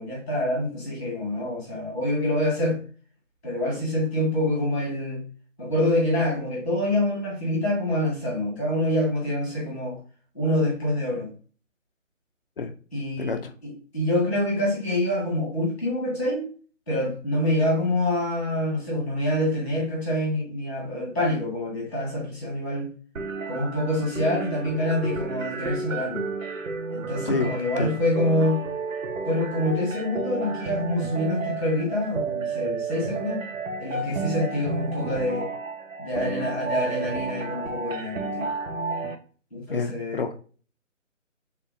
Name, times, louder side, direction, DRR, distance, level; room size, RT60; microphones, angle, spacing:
voice 1, 0.0-2.8 3.4-5.2 5.6-10.0 10.3-11.3 12.9-16.5 16.9-22.9 23.5-26.3 26.9-28.6 29.2-33.4 33.8-35.5 36.0-38.5 39.5-40.3, left 1 dB, ahead, 0.6 m, -26 dB
voice 2, 13.2-13.5 27.3-27.9 39.7-40.3, left 4 dB, 45° left, 0.5 m, -28 dB
sound 1, 23.2-39.2, right 4 dB, 85° right, 0.7 m, -32 dB
3.5 x 2.4 x 2.6 m
figure-of-eight pair, 150°, 39 cm